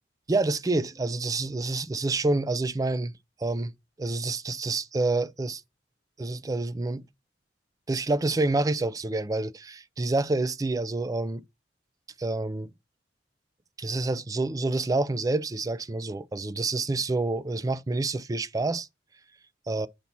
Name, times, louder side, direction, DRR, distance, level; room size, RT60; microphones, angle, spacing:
voice 1, 0.3-3.1 3.4-3.7 4.0-5.6 6.2-7.0 7.9-11.4 12.2-12.7 13.8-18.9 19.7-19.9, right 2 dB, 20° right, 0.4 m, -28 dB
8.1 x 2.8 x 5.8 m
head